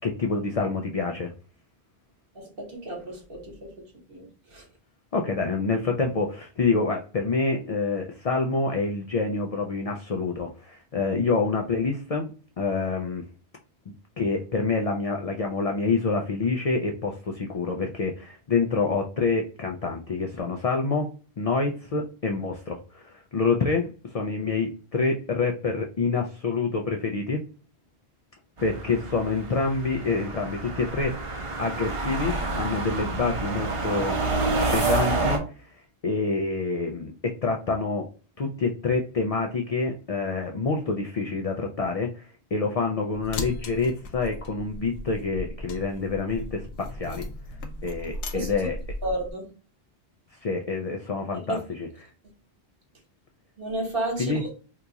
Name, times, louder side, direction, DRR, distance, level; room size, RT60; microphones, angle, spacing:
voice 1, 0.0-1.3 5.1-12.3 12.6-13.2 14.2-21.1 21.4-27.4 28.6-34.4 34.7-35.4 35.7-38.0 38.4-42.2 42.5-47.3 47.8-48.8 50.4-52.1 54.2-54.4, left 4 dB, 60° left, 0.3 m, -27 dB
voice 2, 2.3-3.7 4.1-4.6 48.3-48.7 49.0-49.4 51.3-51.4 53.6-54.5, right 1 dB, 60° right, 1.3 m, -32 dB
sound 1, 28.6-35.4, right 3 dB, 35° right, 0.6 m, -28 dB
sound 2, 43.1-49.3, left 1 dB, 85° left, 0.9 m, -37 dB
2.9 x 2.3 x 3.9 m
omnidirectional pair, 1.1 m